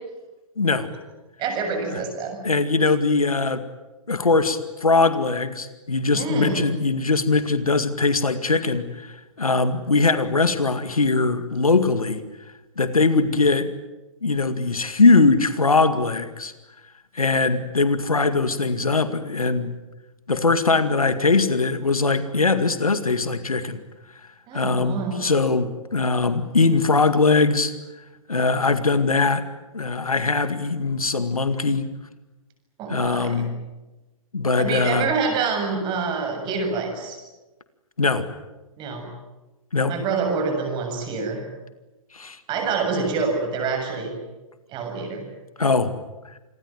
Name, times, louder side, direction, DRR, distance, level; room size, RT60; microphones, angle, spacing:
voice 1, 0.6-0.9 1.9-2.0 2.4-3.6 4.1-12.2 12.8-13.7 14.2-16.5 17.1-19.7 20.3-23.8 24.5-27.7 28.3-29.4 29.7-31.9 32.9-33.5 34.3-35.1 38.0-38.3 39.7-39.9 42.1-42.4 45.6-45.9, left 3 dB, 85° left, 11 dB, 2.1 m, -21 dB
voice 2, 1.4-2.4 6.1-6.6 24.5-25.3 32.8-33.4 34.6-37.2 38.8-39.1 39.9-41.5 42.5-44.1 44.7-45.3, right 4 dB, 25° right, 4 dB, 7.3 m, -26 dB
27.5 x 21.5 x 9.3 m, 1.1 s
figure-of-eight pair, 120°, 18 cm